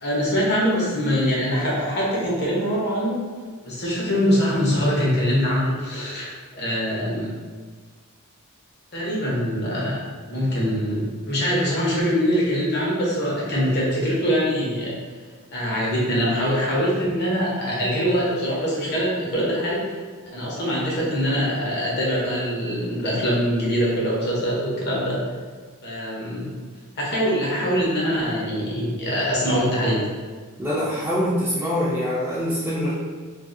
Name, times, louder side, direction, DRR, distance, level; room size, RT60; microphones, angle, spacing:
voice 1, 0.0-3.2 3.6-7.3 8.9-14.9 15.5-20.0 20.3-25.2 25.8-26.5 27.0-30.1, equal, 50° left, -5 dB, 0.8 m, -23 dB
voice 2, 30.6-32.9, equal, 10° right, -9 dB, 0.3 m, -24 dB
2.6 x 2.4 x 2.5 m, 1.5 s
head